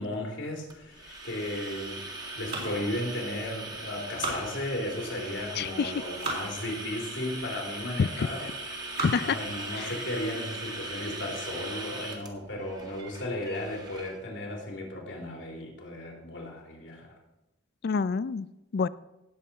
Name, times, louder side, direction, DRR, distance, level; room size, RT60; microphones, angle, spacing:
voice 1, 0.0-8.4 9.2-17.1, left 1 dB, 75° left, -1 dB, 3.4 m, -35 dB
sound 1, 0.7-14.1, right 2 dB, 20° right, 1.8 m, -40 dB
sound 2, 2.3-3.6 3.9-5.1 5.7-6.5 7.1-7.2 8.0-8.3 8.7-9.4 9.9-10.0 10.4-10.5 10.9-11.2, right 3 dB, 55° right, 3.9 m, -37 dB
voice 2, 5.6-5.9 8.0-8.3 9.0-9.4 9.8-9.9 17.8-18.5 18.7-18.9, left 5 dB, 55° left, 17 dB, 0.4 m, -27 dB
17.5 x 7.5 x 4.3 m, 0.96 s
head